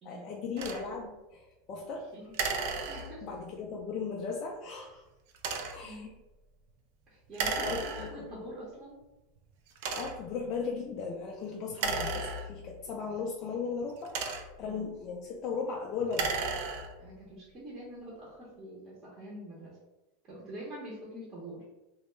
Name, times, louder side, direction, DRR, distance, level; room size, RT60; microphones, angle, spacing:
voice 1, 0.0-2.1 3.2-5.0 5.7-6.1 7.6-8.3 9.9-16.4, left 5 dB, 40° left, -1 dB, 0.3 m, -37 dB
sound 1, 0.6-0.8 2.3-3.4 5.3-5.9 7.3-8.3 9.0-9.1 9.7-10.4 11.7-12.9 13.8-14.7 16.0-17.1, right 4 dB, 60° right, 0.3 m, -34 dB
voice 2, 2.9-3.3 5.7-6.1 7.1-7.6 8.0-9.0 14.6-14.9 17.0-19.8 20.3-21.6, right 1 dB, 30° right, -6 dB, 0.7 m, -45 dB
2.2 x 2.0 x 3.1 m, 1.0 s
supercardioid pair, 140°, 0 cm